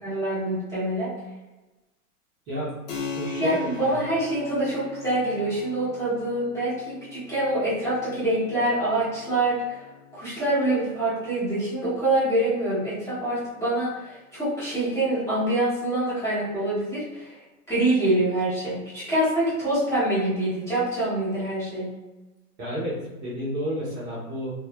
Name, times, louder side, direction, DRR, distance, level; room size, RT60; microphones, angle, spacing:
voice 1, 0.0-1.1 3.4-9.8 10.1-17.4 17.7-21.9, right 1 dB, 5° left, -12 dB, 0.9 m, -25 dB
Keyboard (musical), 2.9-13.1, left 4 dB, 75° left, 1.0 m, -41 dB
voice 2, 3.1-3.7 22.6-24.5, equal, 25° right, -9 dB, 0.7 m, -31 dB
3.1 x 2.4 x 2.3 m, 1.1 s
hypercardioid pair, 145°, 46 cm